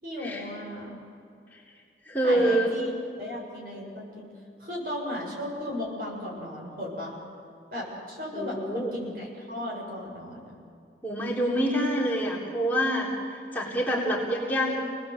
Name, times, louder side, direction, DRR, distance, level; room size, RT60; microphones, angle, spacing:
voice 1, 0.0-1.0 2.2-2.9 3.2-4.3 4.6-7.2 7.7-10.5, left 1 dB, 55° right, -2 dB, 7.2 m, -35 dB
voice 2, 2.1-2.8 8.3-9.0 11.0-14.7, equal, 10° left, -5 dB, 3.6 m, -26 dB
28.5 x 19.5 x 7.9 m, 2.5 s
head